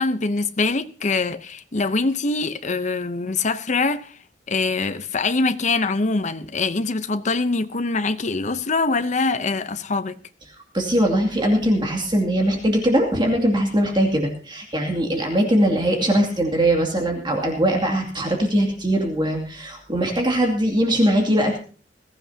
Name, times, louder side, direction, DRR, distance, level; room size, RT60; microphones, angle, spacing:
voice 1, 0.0-4.2 4.5-10.2, left 3 dB, 40° left, 0.8 m, -23 dB
voice 2, 10.7-21.6, right 1 dB, 25° right, 2.5 m, -21 dB
21.5 x 14.5 x 2.8 m
head